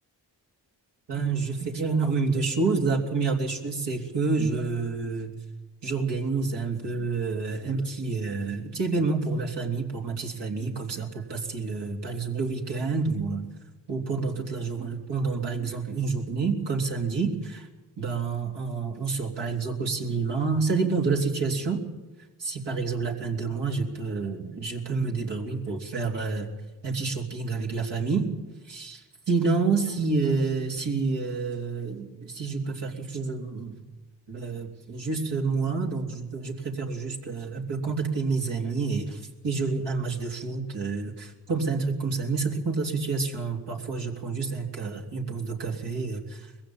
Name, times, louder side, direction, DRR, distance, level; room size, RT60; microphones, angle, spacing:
voice 1, 1.1-5.3 5.8-13.5 13.9-17.7 18.0-21.8 22.4-26.5 26.8-28.3 28.7-33.7 34.3-46.5, right 4 dB, 80° right, 0 dB, 3.4 m, -28 dB
21.0 x 15.5 x 8.8 m, 1.2 s
cardioid pair, 65°, 42 cm